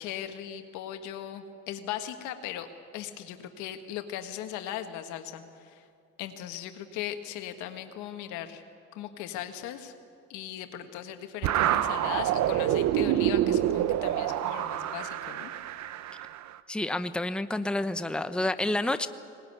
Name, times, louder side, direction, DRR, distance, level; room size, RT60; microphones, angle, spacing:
voice 1, 0.0-2.7 2.9-5.9 6.2-8.6 8.9-9.9 10.3-15.5, left 11 dB, 85° left, 7 dB, 1.6 m, -38 dB
sound 1, 11.4-16.5, right 11 dB, 70° right, 0.9 m, -27 dB
voice 2, 16.7-19.1, left 1 dB, 5° left, 10 dB, 0.9 m, -29 dB
20.0 x 19.0 x 9.5 m, 2.4 s
supercardioid pair, 80°, 29 cm